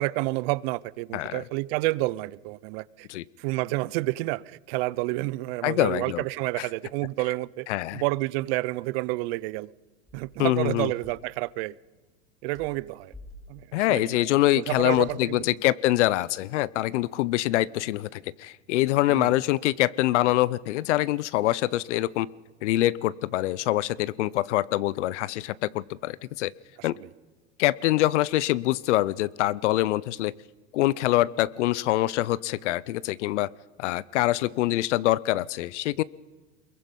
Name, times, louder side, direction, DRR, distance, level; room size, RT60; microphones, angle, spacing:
voice 1, 0.0-3.1 3.4-7.7 7.9-9.7 10.1-11.8 12.4-13.1 13.5-14.2 14.6-15.4 19.1-19.3 26.8-27.1, right 20 dB, 55° right, 0.6 m, -29 dB
voice 2, 1.1-1.4 3.1-3.2 5.6-6.2 6.6-6.7 7.7-8.0 10.4-10.9 13.7-22.3 22.6-26.5 26.8-26.9 27.6-30.3 30.7-33.5 33.8-36.0, left 16 dB, 75° left, 0.7 m, -25 dB
Car, 10.1-11.3 12.5-13.9 14.7-15.5, left 1 dB, 10° left, 4.6 m, -50 dB
23.5 x 21.5 x 5.4 m
hypercardioid pair, 115°, 36 cm